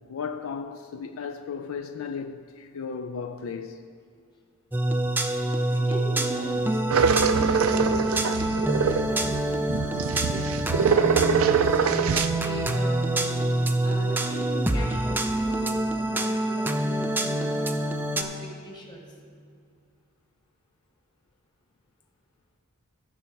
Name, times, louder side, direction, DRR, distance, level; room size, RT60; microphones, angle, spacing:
voice 1, 0.1-3.8, left 5 dB, 70° left, 0.4 m, -35 dB
sound 1, 4.7-18.2, right 1 dB, 10° right, 0.4 m, -26 dB
voice 2, 5.7-11.2 11.8-13.4 13.8-19.0, left 1 dB, 20° left, 1.4 m, -40 dB
sound 2, 6.9-12.3, right 6 dB, 75° right, 0.5 m, -24 dB
15.5 x 5.7 x 4.6 m
head